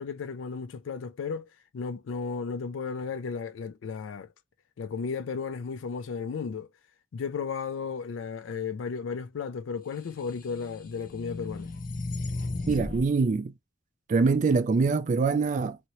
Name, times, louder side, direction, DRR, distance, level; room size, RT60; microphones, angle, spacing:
voice 1, 0.0-1.5 1.7-4.3 4.8-6.7 7.1-11.7, left 5 dB, 90° left, 0.4 m, -34 dB
sound 1, 10.1-13.1, left 2 dB, 50° left, 0.7 m, -35 dB
voice 2, 12.7-13.5 14.1-15.8, right 4 dB, 40° right, 0.3 m, -24 dB
2.9 x 2.7 x 2.9 m
head